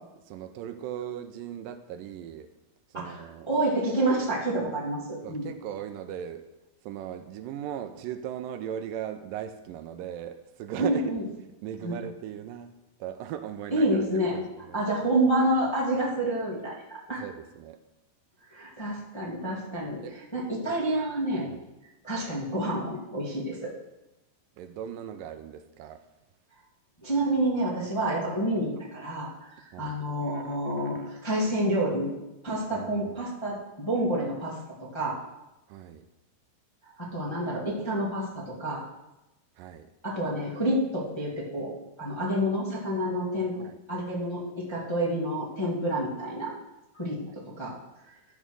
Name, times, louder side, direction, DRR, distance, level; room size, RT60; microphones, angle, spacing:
voice 1, 0.3-2.5 2.9-3.5 5.2-6.4 6.8-11.1 11.5-12.7 13.0-14.0 14.7-14.8 17.2-17.8 20.0-20.2 21.5-21.6 24.6-26.0 29.7-30.0 30.3-30.6 30.9-31.1 32.7-33.1 35.7-36.0 39.6-39.9 43.6-43.8 47.3-47.4, right 10 dB, 85° right, 9 dB, 2.3 m, -38 dB
voice 2, 3.5-5.5 10.8-11.2 11.8-12.0 13.7-14.4 14.7-17.2 18.5-20.0 20.3-21.5 22.0-23.7 27.0-29.5 29.8-32.1 32.4-34.6 34.9-35.2 36.8-38.9 40.0-41.7 42.0-43.5 43.9-46.5 46.9-47.7, right 1 dB, 10° left, -6 dB, 1.5 m, -28 dB
12.5 x 5.5 x 6.3 m, 0.99 s
omnidirectional pair, 4.0 m